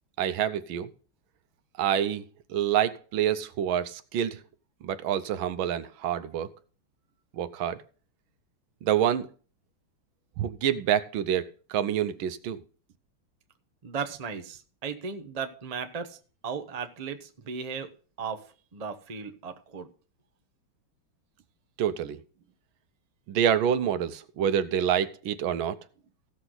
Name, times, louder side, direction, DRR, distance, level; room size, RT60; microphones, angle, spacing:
voice 1, 0.2-0.9 1.8-2.2 2.5-4.4 4.8-6.5 7.3-7.8 8.8-9.3 10.4-12.6 21.8-22.2 23.3-25.8, right 9 dB, 75° right, 13 dB, 1.5 m, -27 dB
voice 2, 13.8-16.2 16.4-17.9 18.2-19.9, right 6 dB, 45° right, 7 dB, 0.5 m, -36 dB
16.0 x 6.4 x 3.9 m, 0.39 s
omnidirectional pair, 2.3 m